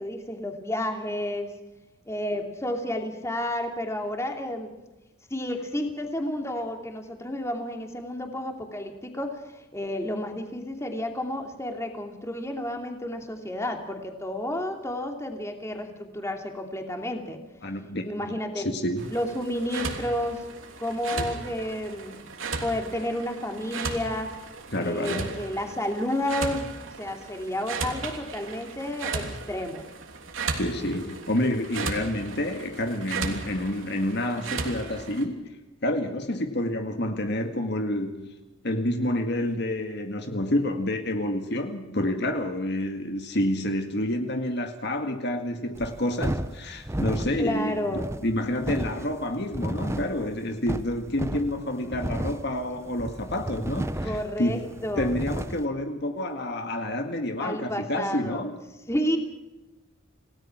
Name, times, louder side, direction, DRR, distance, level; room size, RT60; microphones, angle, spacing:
voice 1, 0.0-1.5 2.1-4.7 5.3-17.4 18.0-18.7 19.1-20.5 20.8-22.3 22.6-24.3 24.8-26.7 27.0-29.9 47.4-48.0 54.0-55.1 57.4-58.5 58.9-59.2, left 1 dB, 15° left, 2.8 m, -31 dB
voice 2, 17.6-18.1 18.6-19.1 21.1-21.3 24.7-25.3 30.5-38.3 38.6-54.7 55.0-58.5, left 1 dB, 55° left, 2.0 m, -29 dB
sound 1, 19.0-35.2, right 4 dB, 75° right, 3.1 m, -36 dB
sound 2, 45.7-55.7, right 1 dB, 15° right, 0.9 m, -33 dB
28.5 x 18.0 x 6.1 m
head